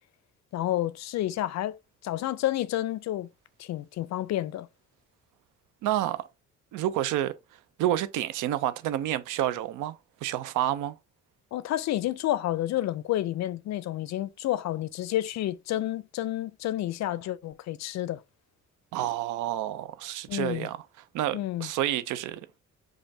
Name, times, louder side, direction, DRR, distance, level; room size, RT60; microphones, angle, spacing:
voice 1, 0.5-1.8 2.0-3.3 3.6-4.7 11.5-18.2 20.3-20.7 21.3-21.7, left 14 dB, 65° left, 0.4 m, -30 dB
voice 2, 5.8-6.3 6.7-7.4 7.8-11.0 18.9-20.8 21.1-22.6, right 12 dB, 85° right, 0.5 m, -29 dB
5.1 x 2.5 x 2.7 m
cardioid pair, 90°, 30 cm